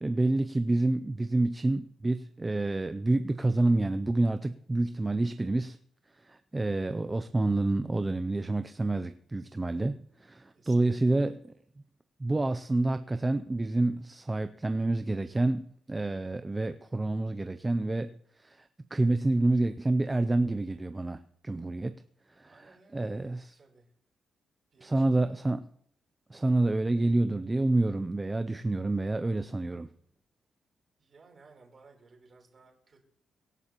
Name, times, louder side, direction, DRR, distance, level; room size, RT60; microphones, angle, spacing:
voice 1, 0.0-5.8 6.3-11.4 12.2-18.1 18.4-18.6 18.9-21.2 21.4-21.9 22.4-23.5 24.8-25.6 26.3-29.9, right 2 dB, 15° right, 0.4 m, -28 dB
voice 2, 10.5-11.3 22.4-23.9 24.7-25.6 31.0-33.0, right 3 dB, 35° right, 3.5 m, -59 dB
24.5 x 11.0 x 3.0 m
wide cardioid pair, 155°, 0 cm